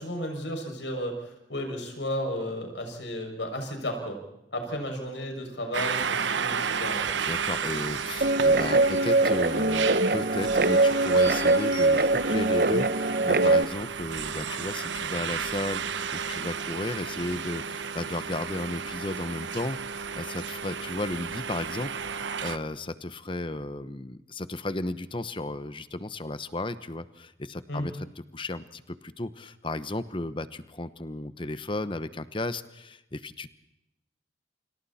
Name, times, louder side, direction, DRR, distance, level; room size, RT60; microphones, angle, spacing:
voice 1, 0.0-4.2 4.5-7.2 27.7-27.9, equal, 75° left, 4 dB, 6.7 m, -33 dB
sound 1, 5.7-22.6, right 6 dB, 85° right, 1.0 m, -33 dB
sound 2, 6.1-6.6 8.8-10.2 11.2-11.9, right 3 dB, 25° right, 4.8 m, -46 dB
voice 2, 7.3-28.1 28.3-33.5, left 2 dB, 30° left, 13 dB, 1.0 m, -34 dB
Guitar, 8.2-13.6, right 2 dB, 55° right, 1.0 m, -22 dB
29.5 x 27.0 x 4.3 m, 0.86 s
head